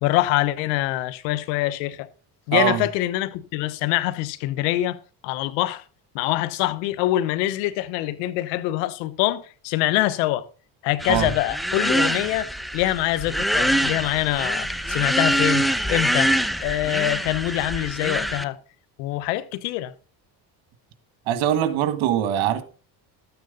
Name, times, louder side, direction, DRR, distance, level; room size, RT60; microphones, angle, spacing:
voice 1, 0.0-2.1 2.5-5.8 6.1-10.5 10.8-12.5 12.7-16.3 16.6-18.6 19.0-19.9, left 16 dB, 90° left, 1.2 m, -24 dB
voice 2, 2.5-2.8 11.1-11.3 21.3-22.6, right 11 dB, 70° right, 1.9 m, -22 dB
sound 1, 11.0-18.4, equal, ahead, 0.8 m, -24 dB
13.0 x 9.3 x 3.9 m
supercardioid pair, 90°, 49 cm